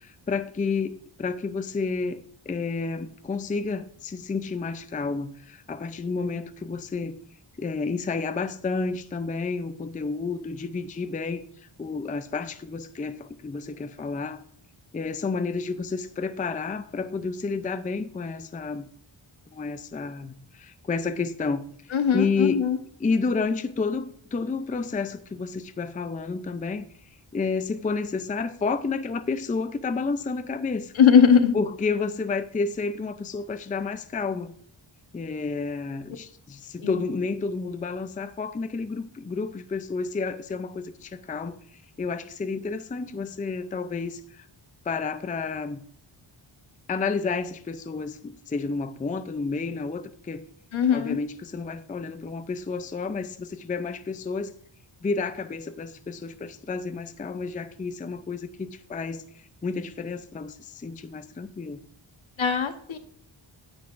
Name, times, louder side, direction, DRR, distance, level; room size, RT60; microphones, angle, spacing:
voice 1, 0.0-7.2 7.6-14.4 14.9-18.9 19.5-21.6 22.1-22.7 23.0-26.9 27.3-30.9 31.5-34.5 35.1-44.5 44.9-45.8 46.9-50.5 50.9-54.5 55.0-61.8, left 4 dB, 20° left, 10 dB, 0.4 m, -30 dB
voice 2, 21.9-22.8 31.0-31.5 36.8-37.0 50.7-51.2 62.4-63.0, left 7 dB, 70° left, 7 dB, 1.1 m, -20 dB
9.4 x 8.0 x 2.5 m, 0.65 s
wide cardioid pair, 100°, 49 cm